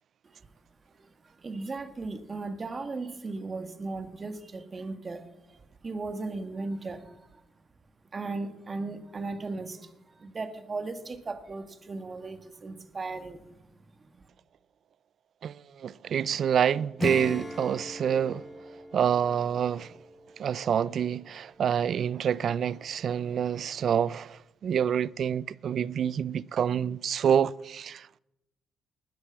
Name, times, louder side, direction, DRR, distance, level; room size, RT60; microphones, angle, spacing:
voice 1, 1.0-7.4 8.1-13.6 14.0-14.3, right 3 dB, 35° right, 1.9 m, -37 dB
voice 2, 15.4-18.5 18.9-20.0 20.4-28.2, right 8 dB, 60° right, 0.5 m, -27 dB
Acoustic guitar / Strum, 17.0-21.3, left 2 dB, 20° left, 1.3 m, -39 dB
20.0 x 9.5 x 7.1 m
cardioid pair, 90°, 0 cm